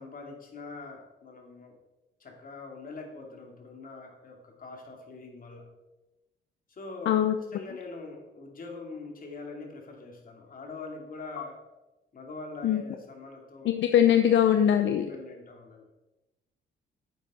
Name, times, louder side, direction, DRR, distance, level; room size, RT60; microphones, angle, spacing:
voice 1, 0.0-1.8 2.2-5.7 6.7-7.2 7.5-11.6 12.1-13.8 14.9-15.9, left 3 dB, 45° left, 1 dB, 2.5 m, -43 dB
voice 2, 13.6-15.1, left 10 dB, 70° left, 7 dB, 0.7 m, -22 dB
9.8 x 7.9 x 4.2 m, 1.0 s
cardioid pair, 90°, 20 cm